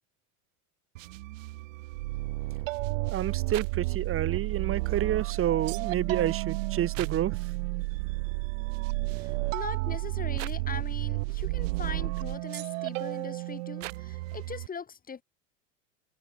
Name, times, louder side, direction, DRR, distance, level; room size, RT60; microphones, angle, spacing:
sound 1, 1.0-14.7, right 20 dB, 65° right, 1.0 m, -35 dB
sound 2, 2.8-12.4, right 33 dB, 50° right, 0.4 m, -33 dB
voice 1, 3.1-7.4, right 11 dB, 30° right, 1.5 m, -29 dB
voice 2, 9.1-15.2, left 6 dB, 20° left, 1.5 m, -41 dB
hypercardioid pair, 80°, 42 cm